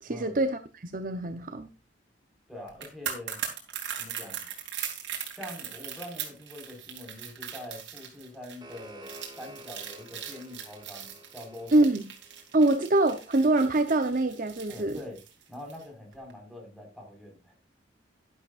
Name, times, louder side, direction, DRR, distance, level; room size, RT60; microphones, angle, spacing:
voice 1, 0.0-1.7 11.7-12.0 12.5-15.0, right 2 dB, 45° right, 0.9 m, -24 dB
voice 2, 2.5-3.4 4.0-4.5 5.4-11.9 14.7-15.2 15.5-17.6, left 1 dB, ahead, 5.0 m, -44 dB
sound 1, 2.7-15.8 16.1-16.3, right 8 dB, 75° right, 3.3 m, -40 dB
sound 2, 8.2-13.3, right 1 dB, 25° right, 2.3 m, -51 dB
12.0 x 11.5 x 2.5 m
head